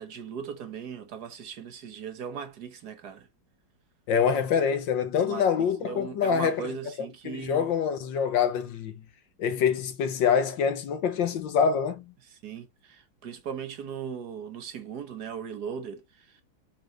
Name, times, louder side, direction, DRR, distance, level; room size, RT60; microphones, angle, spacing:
voice 1, 0.0-3.3 5.2-7.7 12.3-16.4, right 7 dB, 55° right, 1.5 m, -38 dB
voice 2, 4.1-6.7 7.2-8.9 9.4-12.1, left 7 dB, 70° left, 1.6 m, -25 dB
7.2 x 5.2 x 3.1 m
omnidirectional pair, 2.2 m